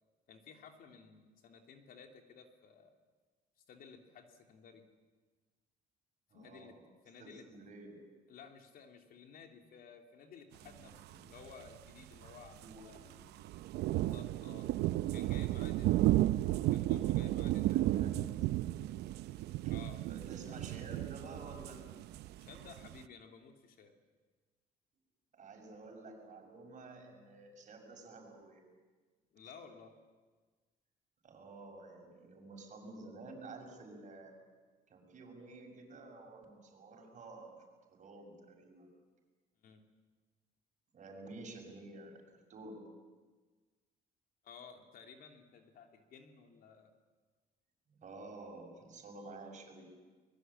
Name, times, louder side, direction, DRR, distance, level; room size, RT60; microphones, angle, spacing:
voice 1, 0.3-2.9 3.7-4.8 6.3-6.8 7.0-7.5 8.3-13.0 13.8-14.7 15.1-16.0 16.7-17.7 19.6-20.0 20.5-20.6 22.4-23.9 29.3-29.9 39.6-39.8 44.4-46.9, left 6 dB, 65° left, 4 dB, 3.1 m, -55 dB
voice 2, 6.3-6.8 7.2-8.0 10.5-11.2 12.6-13.2 17.6-18.4 19.6-19.7 20.1-21.8 25.3-28.7 31.2-34.4 34.9-37.6 37.9-38.9 40.9-42.2 42.5-42.9 47.9-49.9, right 2 dB, 45° right, 2 dB, 6.8 m, -51 dB
sound 1, 11.4-11.5 11.7-11.8 12.1-12.3 12.6-13.0 13.4-23.0, right 15 dB, 80° right, 0.7 m, -33 dB
24.0 x 21.5 x 8.9 m, 1.4 s
cardioid pair, 110°, 17 cm